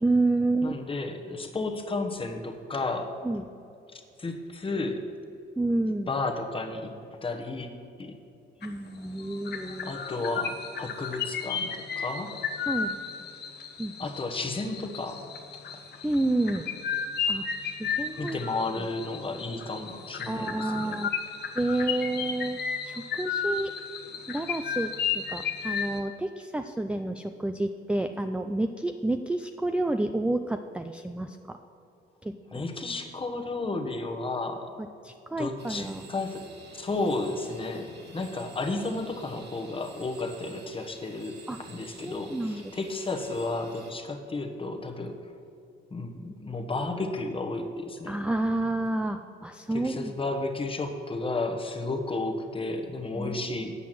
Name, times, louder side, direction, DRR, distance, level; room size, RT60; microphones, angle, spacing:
voice 1, 0.0-0.8 3.2-3.4 5.6-6.1 8.6-9.9 12.7-13.0 13.8-13.9 16.0-16.7 17.3-18.4 20.3-21.1 21.6-23.7 24.3-31.6 32.2-32.7 35.0-36.0 41.5-41.6 42.0-42.7 48.1-50.1 53.1-53.4, right 2 dB, 5° right, 6 dB, 0.4 m, -29 dB
voice 2, 0.6-3.3 3.9-5.0 6.1-7.7 8.0-8.1 9.8-12.4 14.0-15.2 16.0-16.1 18.2-21.0 32.5-34.7 35.4-36.4 36.7-41.4 41.7-45.2 45.9-48.2 49.7-53.7, left 2 dB, 25° left, 3 dB, 1.1 m, -33 dB
sound 1, 8.6-8.9 9.2-26.0, left 6 dB, 55° left, 1.0 m, -34 dB
sound 2, 35.6-43.9, right 4 dB, 60° right, 1.5 m, -51 dB
8.3 x 5.9 x 7.5 m, 2.6 s
cardioid pair, 90°, 20 cm